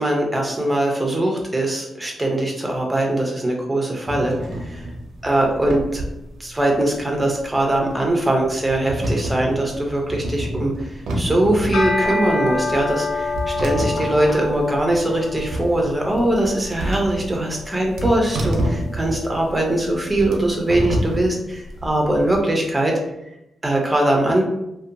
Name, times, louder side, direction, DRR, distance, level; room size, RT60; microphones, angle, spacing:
voice 1, 0.0-4.9 5.2-6.0 6.4-22.9 23.6-24.4, right 1 dB, 10° right, 0 dB, 0.5 m, -21 dB
sound 1, 4.1-22.4, right 1 dB, 90° right, 0.5 m, -29 dB
sound 2, 11.6-20.9, left 3 dB, 90° left, 0.6 m, -29 dB
2.7 x 2.1 x 2.5 m, 0.86 s
wide cardioid pair, 160°, 0 cm